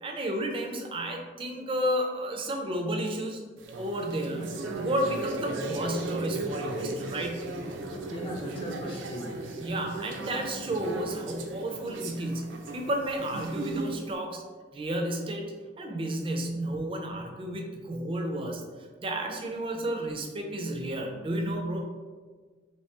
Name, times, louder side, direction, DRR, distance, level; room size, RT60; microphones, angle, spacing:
voice 1, 0.0-3.4 3.7-7.5 9.6-14.4 14.7-18.6 19.0-21.8, right 1 dB, 30° right, 2 dB, 0.4 m, -32 dB
sound 1, 3.6-14.1, right 2 dB, 85° right, 0.4 m, -36 dB
voice 2, 8.1-9.3, equal, 30° left, -1 dB, 0.6 m, -37 dB
3.0 x 2.8 x 3.2 m, 1.5 s
head